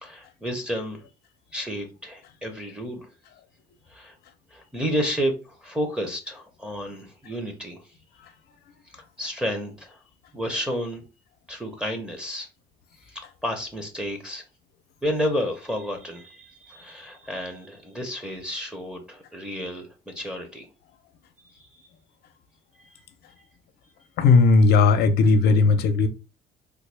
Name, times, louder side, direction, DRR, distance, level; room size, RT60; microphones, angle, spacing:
voice 1, 0.0-1.0 1.5-3.1 3.9-4.1 4.5-7.8 8.9-10.0 10.3-11.0 11.5-12.5 13.1-14.4 15.0-20.7 21.5-21.7, equal, 5° right, 0.8 m, -31 dB
voice 2, 24.2-26.1, left 4 dB, 70° left, 0.6 m, -17 dB
3.5 x 2.3 x 3.3 m
cardioid pair, 110°, 17 cm